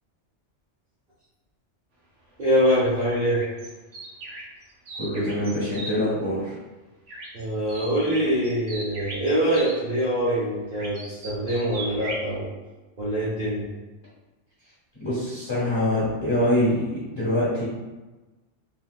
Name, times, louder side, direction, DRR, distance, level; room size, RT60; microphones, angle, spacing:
voice 1, 2.4-3.4 7.3-12.5 13.0-13.6, equal, 45° right, -9 dB, 0.8 m, -24 dB
sound 1, 3.0-5.9 7.1-7.4 7.7-9.8 10.7-12.3, right 2 dB, 75° right, 1.0 m, -38 dB
voice 2, 5.0-6.5 15.0-17.7, left 1 dB, 20° left, -9 dB, 1.4 m, -24 dB
3.5 x 2.8 x 2.2 m, 1.2 s
omnidirectional pair, 1.2 m